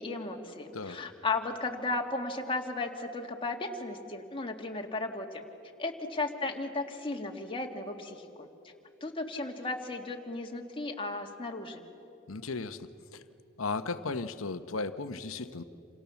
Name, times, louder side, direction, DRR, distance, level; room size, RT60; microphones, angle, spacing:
voice 1, 0.0-5.4 5.8-8.5 9.0-11.8, left 3 dB, 25° left, 2 dB, 2.2 m, -35 dB
voice 2, 0.7-1.0 12.3-13.2 13.6-15.6, left 3 dB, 80° left, 10 dB, 1.1 m, -36 dB
28.0 x 28.0 x 7.2 m, 2.7 s
head